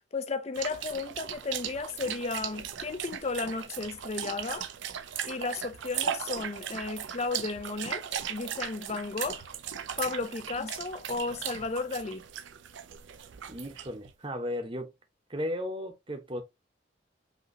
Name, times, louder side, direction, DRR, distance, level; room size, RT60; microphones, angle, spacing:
voice 1, 0.1-4.7 5.2-8.0 8.3-9.5 10.0-12.2, left 3 dB, 35° left, 0.5 m, -34 dB
sound 1, 0.5-14.1, right 9 dB, 70° right, 0.5 m, -38 dB
voice 2, 13.5-14.9 15.3-16.4, left 1 dB, 25° right, 0.9 m, -35 dB
5.2 x 2.8 x 2.6 m
head